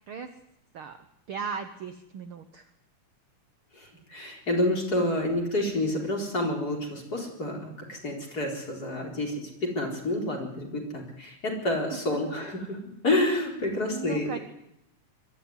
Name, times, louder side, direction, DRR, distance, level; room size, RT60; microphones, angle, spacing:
voice 1, 1.3-2.7 11.9-12.3 13.9-14.4, right 6 dB, 60° right, 8 dB, 1.6 m, -37 dB
voice 2, 3.8-9.3 9.6-12.8 13.0-14.4, left 1 dB, 30° left, 1 dB, 4.7 m, -29 dB
22.5 x 14.0 x 9.8 m, 0.82 s
omnidirectional pair, 3.4 m